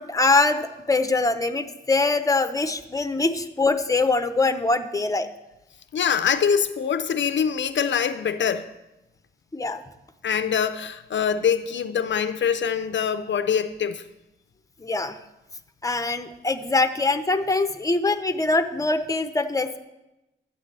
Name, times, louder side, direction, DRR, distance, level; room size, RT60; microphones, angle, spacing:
voice 1, 0.0-5.3 9.5-9.8 14.8-15.2 15.8-19.8, left 3 dB, 15° left, 9 dB, 0.7 m, -23 dB
voice 2, 5.9-8.7 10.2-14.1, left 7 dB, 65° left, 10 dB, 0.5 m, -24 dB
12.5 x 8.2 x 3.3 m, 0.96 s
cardioid pair, 70°, 20 cm